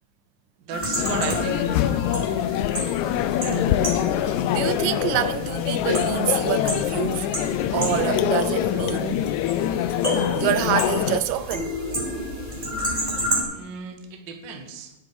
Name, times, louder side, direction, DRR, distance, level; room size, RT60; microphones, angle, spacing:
voice 1, 0.6-2.0 3.5-3.8 13.5-14.9, right 5 dB, 55° right, 1.3 m, -35 dB
sound 1, 0.7-13.4, left 1 dB, 10° right, 2.9 m, -31 dB
sound 2, 1.0-11.2, left 11 dB, 80° left, 1.7 m, -24 dB
voice 2, 3.4-3.8 4.2-7.3 7.7-9.3 10.4-11.7, right 13 dB, 85° right, 2.3 m, -27 dB
9.8 x 9.8 x 4.8 m
omnidirectional pair, 3.8 m